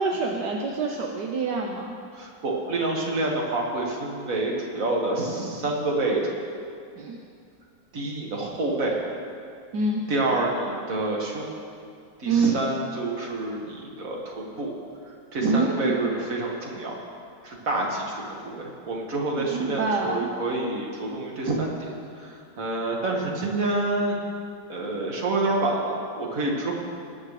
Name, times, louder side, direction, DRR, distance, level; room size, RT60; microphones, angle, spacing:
voice 1, 0.0-1.9 7.0-7.2 9.7-10.1 12.3-12.5 15.4-16.1 19.5-20.3, right 4 dB, 75° right, 0 dB, 1.4 m, -26 dB
voice 2, 2.1-6.2 7.9-9.1 10.1-11.5 12.2-14.7 15.3-16.9 17.4-21.9 22.1-24.2 24.7-26.7, right 2 dB, 50° right, -1 dB, 2.1 m, -27 dB
20.5 x 9.4 x 3.3 m, 2.3 s
omnidirectional pair, 1.9 m